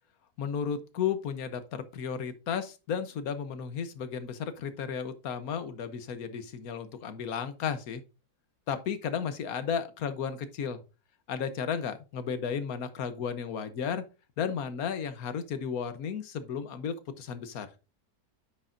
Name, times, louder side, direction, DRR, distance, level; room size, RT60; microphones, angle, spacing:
voice 1, 0.4-8.0 8.7-10.8 11.3-14.0 14.4-17.7, left 7 dB, 65° left, 1.3 m, -34 dB
9.5 x 6.4 x 2.6 m
omnidirectional pair, 1.8 m